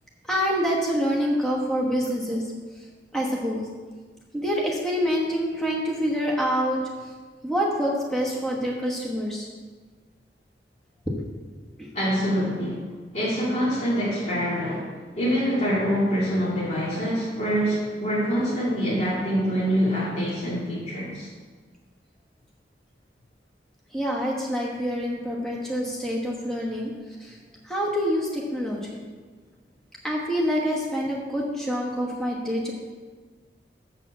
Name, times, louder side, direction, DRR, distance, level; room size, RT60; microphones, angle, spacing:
voice 1, 0.2-2.5 2.7-2.8 3.1-3.7 4.3-7.1 7.4-9.5 11.1-11.2 11.8-11.9 23.9-27.4 27.6-29.0 30.0-32.7, equal, 5° left, -3 dB, 1.1 m, -26 dB
voice 2, 11.9-12.9 13.1-21.3, equal, 40° left, -8 dB, 2.2 m, -25 dB
7.3 x 6.7 x 6.0 m, 1.4 s
head